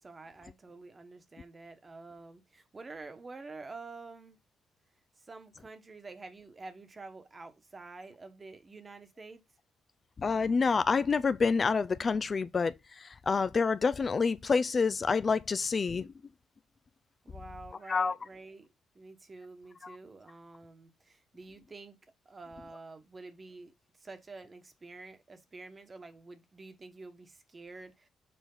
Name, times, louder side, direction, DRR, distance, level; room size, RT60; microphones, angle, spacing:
voice 1, 0.0-4.4 5.2-9.4 17.2-18.7 18.9-22.0 22.2-28.1, right 3 dB, 30° right, 1.3 m, -48 dB
voice 2, 10.2-16.1 17.9-18.1 19.8-20.0, left 5 dB, 35° left, 0.4 m, -28 dB
7.0 x 4.5 x 3.9 m
cardioid pair, 90°, 0 cm